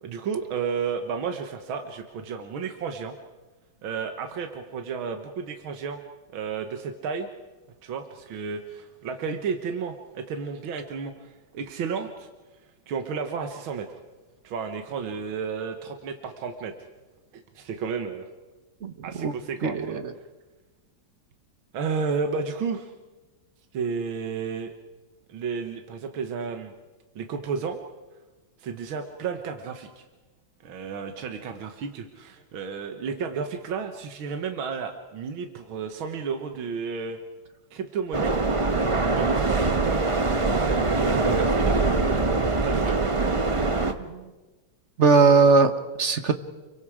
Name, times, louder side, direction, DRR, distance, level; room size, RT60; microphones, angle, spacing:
voice 1, 0.0-3.2 3.8-6.0 6.3-7.3 7.8-12.3 12.9-13.9 14.4-16.7 17.3-18.3 19.0-20.0 21.7-22.9 23.7-24.7 25.3-26.7 27.2-27.8 28.6-30.0 30.6-37.2 37.7-38.4 39.1-40.1 41.0-42.0 42.6-43.0, right 5 dB, 80° right, 6 dB, 2.1 m, -32 dB
voice 2, 19.6-20.1 44.0-44.3 45.0-45.7 46.0-46.3, right 4 dB, 40° right, 9 dB, 1.2 m, -19 dB
sound 1, 38.1-43.9, right 3 dB, 25° right, 0.7 m, -23 dB
29.5 x 23.5 x 5.0 m, 1.2 s
omnidirectional pair, 2.2 m